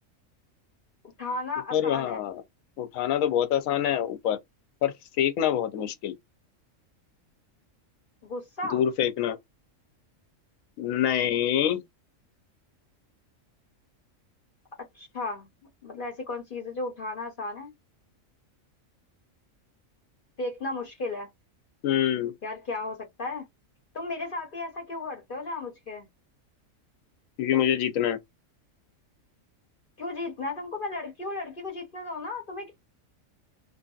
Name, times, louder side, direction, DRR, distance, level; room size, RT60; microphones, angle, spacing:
voice 1, 1.2-2.2 8.2-8.8 14.9-15.5 15.8-17.7 20.4-21.3 22.4-23.4 23.9-26.1 30.0-32.8, left 3 dB, 45° left, 0.9 m, -34 dB
voice 2, 1.7-2.4 2.8-4.4 4.8-6.1 8.7-9.4 10.8-11.8 21.8-22.3 27.4-28.2, left 10 dB, 85° left, 1.0 m, -25 dB
2.7 x 2.6 x 2.3 m
omnidirectional pair, 1.4 m